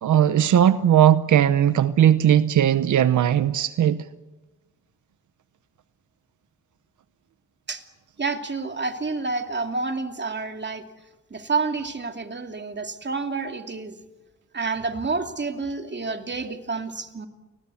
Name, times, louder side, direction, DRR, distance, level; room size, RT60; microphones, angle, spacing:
voice 1, 0.0-4.0, right 10 dB, 90° right, 0.8 m, -18 dB
voice 2, 8.2-10.8 11.3-13.9 14.5-17.3, right 4 dB, 35° right, 2.7 m, -29 dB
29.0 x 20.5 x 8.4 m
cardioid pair, 70°, 29 cm